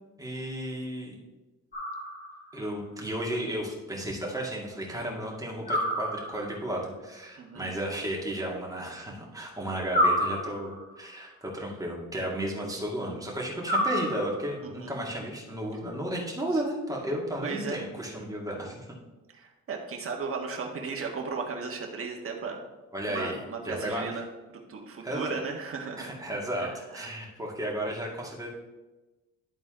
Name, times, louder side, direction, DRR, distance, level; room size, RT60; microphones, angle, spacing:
voice 1, 0.2-1.2 2.5-18.9 22.9-23.4 23.6-24.2 25.0-25.4 26.0-28.5, right 1 dB, 10° right, -2 dB, 2.2 m, -33 dB
sound 1, 1.7-2.6 5.7-6.7 9.9-11.0 13.6-14.6, equal, 30° left, 2.6 m, -29 dB
voice 2, 17.4-17.8 19.3-22.6 23.1-24.3 24.7-26.1 26.6-27.1, right 5 dB, 45° right, 1 dB, 1.5 m, -36 dB
11.5 x 4.0 x 3.8 m, 1.1 s
cardioid pair, 90°, 30 cm